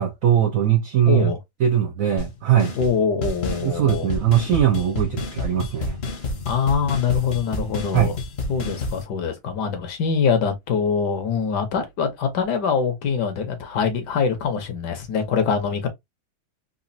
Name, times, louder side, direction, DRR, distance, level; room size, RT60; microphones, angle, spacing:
voice 1, 0.0-1.3 1.6-2.7 3.6-6.0 7.9-8.2, right 10 dB, 70° right, 0.7 m, -20 dB
voice 2, 1.1-1.4 2.7-4.1 6.5-8.2 8.5-15.9, left 6 dB, 65° left, 1.3 m, -24 dB
sound 1, 2.2-2.3 2.6-2.9 3.2-9.0, left 2 dB, 45° left, 0.9 m, -29 dB
3.9 x 2.4 x 2.6 m
omnidirectional pair, 2.1 m